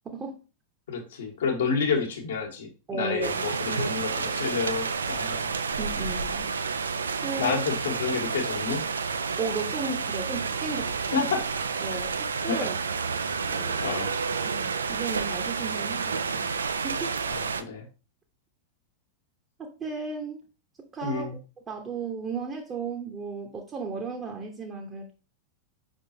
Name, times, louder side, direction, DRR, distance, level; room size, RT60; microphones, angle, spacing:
voice 1, 0.1-0.4 2.9-3.6 5.8-6.5 7.2-7.6 9.4-11.3 11.8-12.8 13.2-13.8 14.4-16.4 16.8-17.1 19.6-20.4 20.9-21.3 21.7-25.1, right 4 dB, 25° right, 1 dB, 0.9 m, -35 dB
voice 2, 0.9-5.5 7.4-8.8 11.1-11.4 12.5-12.7 13.8-14.1 17.3-17.9 21.0-21.4, left 5 dB, 65° left, 2 dB, 1.2 m, -29 dB
sound 1, 3.2-17.6, right 5 dB, 70° right, 0.3 m, -30 dB
5.5 x 3.6 x 2.7 m, 0.33 s
figure-of-eight pair, 90°, 0 cm